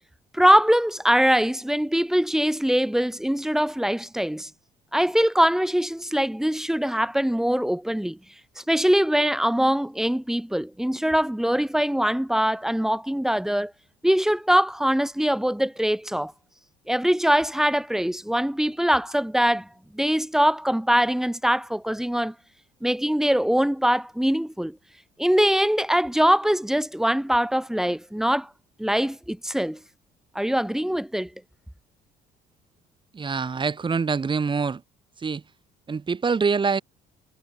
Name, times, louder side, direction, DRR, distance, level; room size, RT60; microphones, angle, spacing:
voice 1, 0.3-4.5 4.9-8.2 8.6-13.7 14.0-16.3 16.9-19.7 19.9-22.3 22.8-24.8 25.2-28.5 28.8-29.8 30.3-31.3, equal, 5° right, 4.8 m, -22 dB
voice 2, 33.1-34.8 35.2-35.4 35.9-36.8, right 5 dB, 30° right, 6.4 m, -25 dB
cardioid pair, 110°, 17 cm